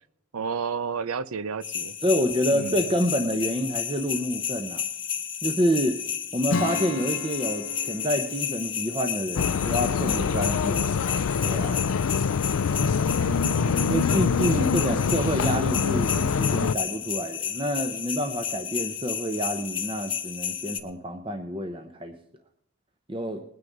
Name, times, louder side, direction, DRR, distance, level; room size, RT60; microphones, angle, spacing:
voice 1, 0.3-2.0 2.5-2.7 13.2-14.5, right 5 dB, 85° right, 0.6 m, -32 dB
sound 1, 1.6-20.8, left 8 dB, 25° left, 0.9 m, -32 dB
voice 2, 2.0-4.8 5.4-6.0 6.3-10.8 11.4-11.8 13.9-22.1 23.1-23.4, equal, 25° right, 0.8 m, -28 dB
Acoustic guitar / Strum, 6.5-10.8, left 3 dB, 65° left, 0.9 m, -35 dB
sound 2, 9.4-16.8, left 6 dB, 85° left, 0.4 m, -25 dB
20.5 x 9.6 x 4.0 m
head